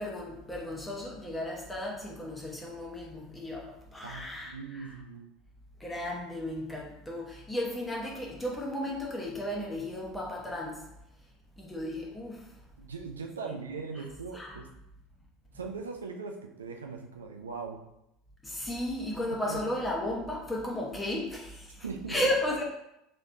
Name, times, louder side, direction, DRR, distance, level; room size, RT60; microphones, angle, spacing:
voice 1, 0.0-4.9 5.8-10.8 11.6-12.4 14.3-14.6 18.4-21.7 22.1-22.6, left 1 dB, 10° left, -2 dB, 1.0 m, -34 dB
voice 2, 4.0-5.3 12.8-14.7 15.5-17.8 18.7-18.8 19.3-19.6 21.8-22.2, right 4 dB, 80° right, 3 dB, 0.4 m, -40 dB
3.8 x 3.3 x 2.6 m, 0.83 s
figure-of-eight pair, 70°, 0 cm